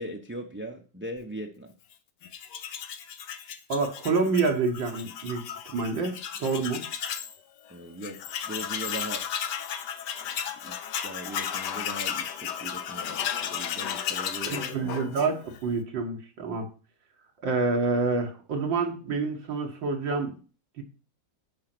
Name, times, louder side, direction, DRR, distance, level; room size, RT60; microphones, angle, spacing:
voice 1, 0.0-1.7 7.7-9.2 10.6-10.8 11.0-14.6, right 1 dB, 10° right, 2 dB, 0.6 m, -39 dB
Tools, 2.2-7.3 7.7-7.8 8.0-15.6, left 9 dB, 70° left, 1.4 m, -34 dB
voice 2, 3.7-6.8 14.5-16.7 17.4-20.4 20.8-20.9, right 4 dB, 80° right, 2 dB, 2.3 m, -28 dB
9.5 x 5.4 x 6.1 m, 0.37 s
omnidirectional pair, 2.0 m